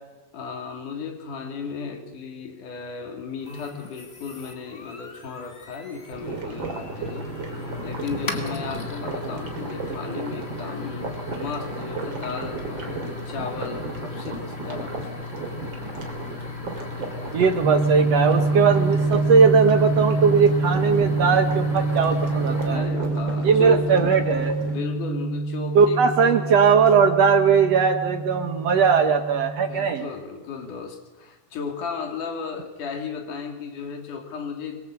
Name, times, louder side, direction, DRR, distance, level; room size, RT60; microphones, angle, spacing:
voice 1, 0.3-7.3 7.8-15.1 22.7-24.0 24.7-26.4 29.5-34.8, left 5 dB, 60° left, 3 dB, 4.2 m, -35 dB
sound 1, 3.4-23.0, left 5 dB, 25° left, 1.4 m, -38 dB
sound 2, 6.1-24.8, right 3 dB, 30° right, 3.5 m, -35 dB
voice 2, 17.3-22.9 23.4-24.6 25.8-30.1, right 6 dB, 60° right, 7 dB, 1.8 m, -19 dB
sound 3, 17.6-29.9, right 3 dB, 80° right, 1.1 m, -26 dB
26.5 x 22.5 x 7.9 m, 1.2 s
omnidirectional pair, 4.3 m